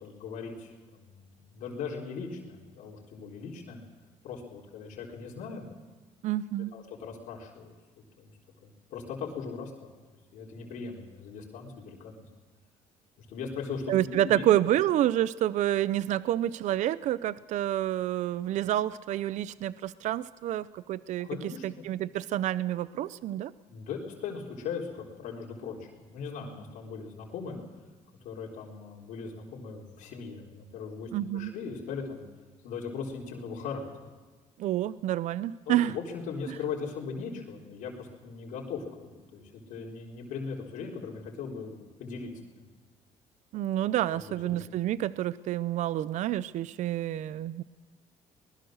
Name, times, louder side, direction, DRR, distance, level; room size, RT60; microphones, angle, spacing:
voice 1, 0.0-3.8 4.2-5.7 6.7-7.7 8.2-8.3 8.6-9.9 10.3-12.1 13.2-14.4 21.2-22.1 23.7-27.6 28.2-32.2 32.6-34.1 35.7-39.4 39.7-42.3 44.1-44.6, left 5 dB, 85° left, -2 dB, 3.9 m, -39 dB
voice 2, 6.2-6.7 13.9-23.5 31.1-31.5 34.6-35.9 43.5-47.6, right 12 dB, 70° right, 17 dB, 0.6 m, -28 dB
23.5 x 20.0 x 6.5 m, 1.3 s
cardioid pair, 120°, 13 cm